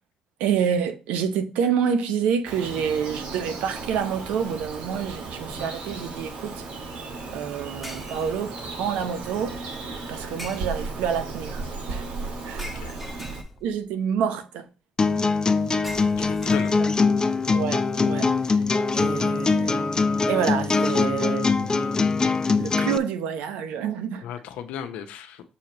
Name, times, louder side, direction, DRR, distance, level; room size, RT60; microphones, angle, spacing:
voice 1, 0.4-6.6 7.3-9.6 10.1-12.0 12.4-13.0 13.6-14.7 15.7-15.8 16.8-17.1 17.5-18.6 18.9-19.9 20.3-21.8 22.6-24.3, right 7 dB, 85° right, 0.8 m, -28 dB
Bird vocalization bird call bird song, 2.4-13.4, right 3 dB, 70° right, 1.6 m, -35 dB
sound 1, 5.8-6.0 7.8-8.7 10.4-11.1 12.6-13.9 15.8-17.2, equal, 5° right, 1.6 m, -41 dB
voice 2, 12.6-12.9 16.2-16.7 24.2-25.4, left 9 dB, 80° left, 0.8 m, -35 dB
sound 2, 15.0-23.0, left 4 dB, 30° left, 0.6 m, -22 dB
7.0 x 2.9 x 5.1 m
supercardioid pair, 65°, 2 cm